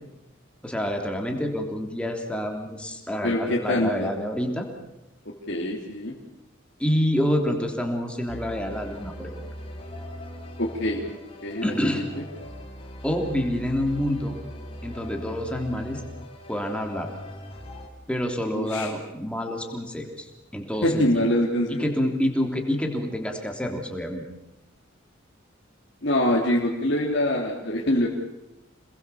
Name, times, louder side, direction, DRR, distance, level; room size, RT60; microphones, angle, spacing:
voice 1, 0.6-4.7 6.8-9.4 11.6-12.0 13.0-14.4 14.8-16.0 16.5-17.1 18.1-21.2 21.8-24.2, equal, 5° left, 2 dB, 3.3 m, -27 dB
voice 2, 3.2-4.1 5.5-6.1 10.6-11.0 11.4-12.2 18.5-18.9 20.8-21.9 26.0-28.1, left 1 dB, 60° left, -3 dB, 3.0 m, -24 dB
sound 1, 8.3-17.9, left 1 dB, 30° left, 3.1 m, -40 dB
27.5 x 20.5 x 7.0 m, 0.91 s
head